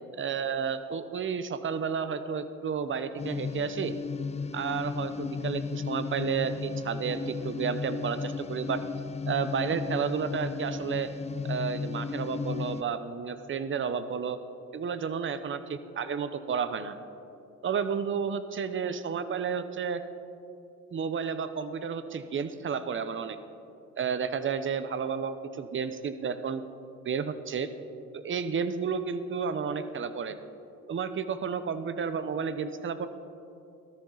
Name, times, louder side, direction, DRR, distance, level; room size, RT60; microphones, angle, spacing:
voice 1, 0.1-4.0 4.5-8.8 9.3-11.1 11.4-14.4 14.7-16.9 17.6-20.0 20.9-23.4 24.0-26.6 27.0-27.7 28.1-30.4 30.9-33.1, right 6 dB, 40° right, 11 dB, 0.8 m, -31 dB
sound 1, 3.2-12.8, left 5 dB, 20° left, 0.5 m, -34 dB
17.5 x 13.5 x 4.0 m, 2.7 s
cardioid pair, 90°, 30 cm